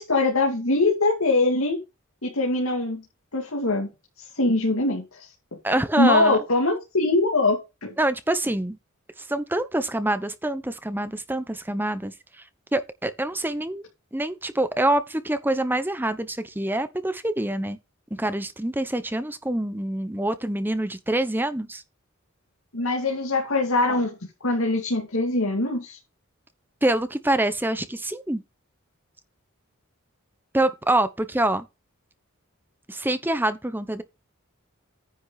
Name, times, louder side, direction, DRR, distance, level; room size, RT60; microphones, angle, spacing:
voice 1, 0.0-1.8 2.2-3.0 3.3-3.9 4.3-5.3 6.0-7.9 22.7-24.1 24.4-26.0, left 2 dB, 80° left, 2.4 m, -22 dB
voice 2, 5.6-6.4 8.0-8.8 9.2-12.1 12.7-13.8 14.1-17.8 18.2-21.8 26.8-28.4 30.5-31.7 32.9-34.0, right 1 dB, 10° right, 0.9 m, -25 dB
10.0 x 6.1 x 4.1 m
head